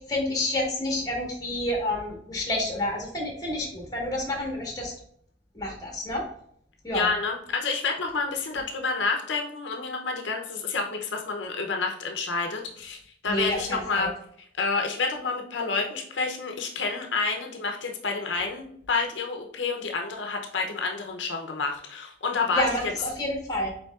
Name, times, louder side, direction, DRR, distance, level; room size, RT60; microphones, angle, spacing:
voice 1, 0.1-4.9 5.5-6.2 6.8-7.1 13.3-14.1 22.5-23.7, left 1 dB, 20° left, 0 dB, 1.3 m, -29 dB
voice 2, 6.9-14.1 14.6-22.9, left 4 dB, 75° left, 2 dB, 0.6 m, -29 dB
5.2 x 4.3 x 2.4 m, 0.66 s
head